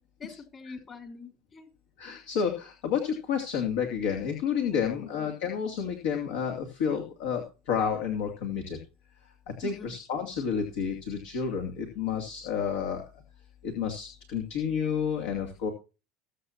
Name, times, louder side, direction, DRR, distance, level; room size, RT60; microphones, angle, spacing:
voice 1, 0.2-1.6 4.7-5.1 9.6-10.0, left 5 dB, 30° left, 6 dB, 3.6 m, -44 dB
voice 2, 2.0-8.8 9.5-13.0 13.6-15.7, left 7 dB, 65° left, 3 dB, 2.6 m, -30 dB
21.0 x 8.0 x 2.9 m, 0.30 s
figure-of-eight pair, 75°, 0 cm